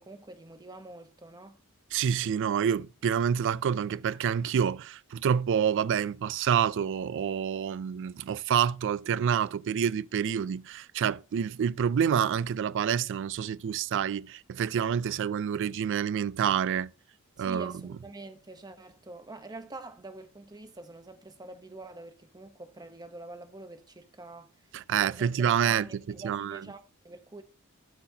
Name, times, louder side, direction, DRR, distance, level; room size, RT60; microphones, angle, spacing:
voice 1, 0.0-1.6 17.4-24.5 25.0-27.4, right 2 dB, 20° right, 0.8 m, -45 dB
voice 2, 1.9-16.9 17.4-17.7 24.7-26.6, right 8 dB, 60° right, 0.3 m, -28 dB
12.5 x 5.8 x 2.8 m
head